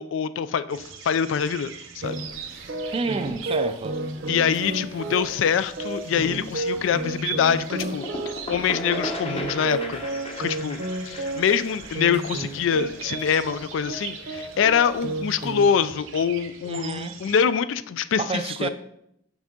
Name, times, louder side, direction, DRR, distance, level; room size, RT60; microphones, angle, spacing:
voice 1, 0.0-2.2 4.3-8.0 8.5-10.0 10.4-10.8 11.1-18.2 18.6-18.7, left 7 dB, 70° left, 0.3 m, -24 dB
sound 1, 0.7-17.4, right 7 dB, 80° right, 0.9 m, -41 dB
sound 2, 2.0-15.7, right 2 dB, 55° right, 0.7 m, -32 dB
voice 2, 2.9-4.0 16.7-17.2 18.2-18.7, right 3 dB, 30° right, 0.4 m, -29 dB
sound 3, 7.8-13.4, left 1 dB, 30° left, 0.8 m, -35 dB
6.0 x 5.5 x 3.7 m
head